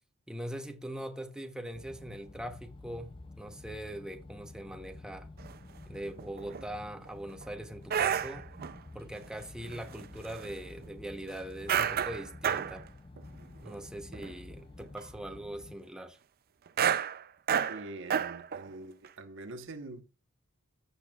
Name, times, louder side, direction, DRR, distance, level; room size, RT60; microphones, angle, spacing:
voice 1, 0.3-5.3 5.9-8.5 8.9-12.8 13.6-16.2, right 1 dB, 5° right, 0.9 m, -41 dB
sound 1, 1.7-15.7, left 2 dB, 25° left, 0.6 m, -50 dB
sound 2, 5.4-5.5 6.1-6.6 7.0-7.4 7.9-8.8 9.7-10.5 10.8-10.9 11.7-12.8 13.2-13.3 13.6-13.8 14.1-14.5 14.8-15.0 16.7-18.7 19.0-19.1, right 8 dB, 45° right, 0.5 m, -31 dB
voice 2, 17.7-20.0, right 2 dB, 60° right, 1.2 m, -44 dB
14.5 x 6.9 x 2.4 m
head